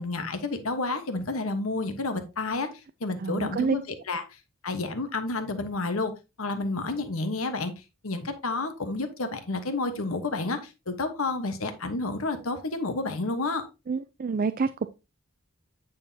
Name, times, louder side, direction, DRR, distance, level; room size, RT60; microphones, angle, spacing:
voice 1, 0.0-2.7 3.0-4.4 4.6-6.1 6.4-13.7, left 3 dB, 80° left, 8 dB, 1.2 m, -30 dB
voice 2, 3.2-3.8 13.9-14.9, right 4 dB, 45° right, 12 dB, 0.4 m, -27 dB
9.2 x 6.3 x 2.8 m, 0.26 s
head